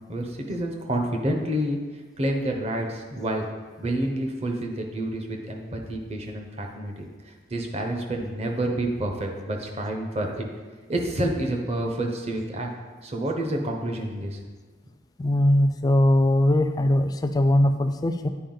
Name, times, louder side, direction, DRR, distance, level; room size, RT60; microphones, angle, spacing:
voice 1, 0.1-1.8 2.2-3.5 3.8-7.1 7.5-10.5 10.9-12.7 13.0-14.4, right 1 dB, 35° right, 2 dB, 0.8 m, -28 dB
voice 2, 15.2-18.3, left 1 dB, 20° left, 8 dB, 0.3 m, -20 dB
9.0 x 4.6 x 3.9 m, 1.4 s
head